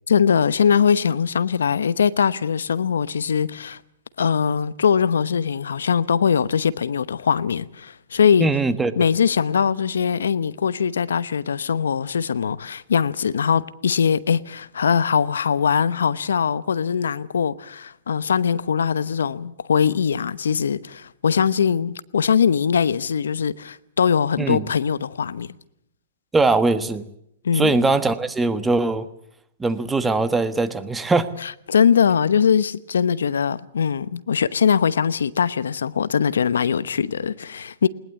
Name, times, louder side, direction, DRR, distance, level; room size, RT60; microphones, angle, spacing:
voice 1, 0.1-3.8 4.2-8.5 9.0-25.5 27.4-27.8 31.4-37.9, left 7 dB, 80° left, 0.9 m, -21 dB
voice 2, 8.4-8.9 24.4-24.7 26.3-27.0 27.5-29.1 29.6-31.3, right 3 dB, 10° right, 1.4 m, -21 dB
20.5 x 19.0 x 8.3 m
hypercardioid pair, 125°, 0 cm